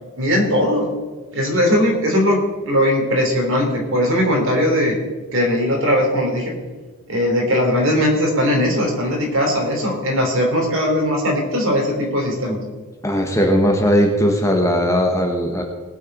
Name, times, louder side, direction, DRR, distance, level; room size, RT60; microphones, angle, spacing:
voice 1, 0.2-0.9 1.3-4.9 5.3-6.5 7.1-12.6, equal, 60° right, 1 dB, 3.2 m, -19 dB
voice 2, 13.0-15.6, equal, 15° left, 2 dB, 1.3 m, -18 dB
19.5 x 6.6 x 5.4 m, 1.3 s
head